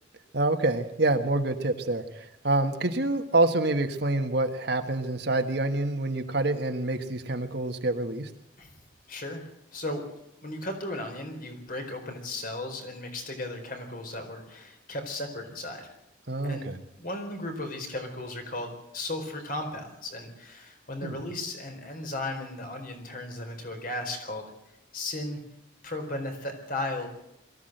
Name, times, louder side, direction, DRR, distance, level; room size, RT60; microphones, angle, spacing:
voice 1, 0.3-8.3 16.3-16.7 21.0-21.1, right 2 dB, 55° right, 6 dB, 1.5 m, -27 dB
voice 2, 9.1-10.0 10.4-15.9 16.4-24.5 24.9-25.4 25.8-27.1, left 1 dB, 45° left, 5 dB, 4.3 m, -36 dB
22.5 x 15.0 x 8.0 m, 0.83 s
head